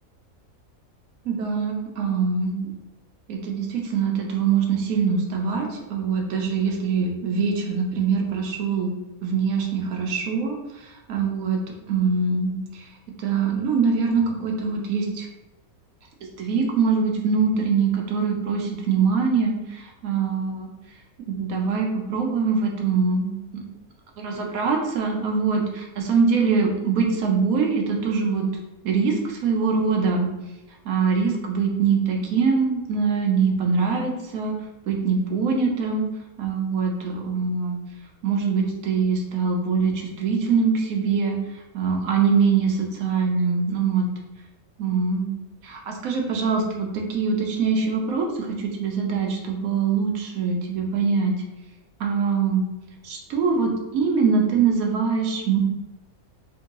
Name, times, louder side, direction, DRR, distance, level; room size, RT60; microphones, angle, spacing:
voice 1, 1.3-2.7 3.3-8.9 9.2-10.5 10.8-11.6 11.9-12.9 13.2-15.3 16.4-20.7 21.3-23.6 24.2-28.5 28.8-30.3 30.8-34.5 34.9-36.0 36.4-37.8 38.2-41.4 41.7-44.1 44.8-45.3 45.6-51.3 52.0-52.6 53.0-55.6, right 5 dB, 75° right, 1 dB, 1.1 m, -23 dB
3.7 x 2.6 x 2.9 m, 1.0 s
omnidirectional pair, 1.5 m